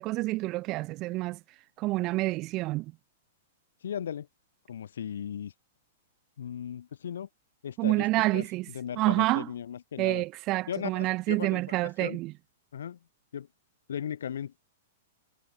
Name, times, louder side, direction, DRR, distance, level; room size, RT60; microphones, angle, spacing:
voice 1, 0.0-1.4 1.8-2.9 7.8-8.7 9.0-9.5 10.0-12.3, right 20 dB, 35° right, 1.0 m, -28 dB
voice 2, 3.8-4.3 4.7-5.5 6.4-7.3 7.6-8.1 8.3-10.2 10.7-12.2 12.7-13.0 13.3-13.5 13.9-14.6, left 9 dB, 70° left, 3.9 m, -37 dB
figure-of-eight pair, 105°, 0 cm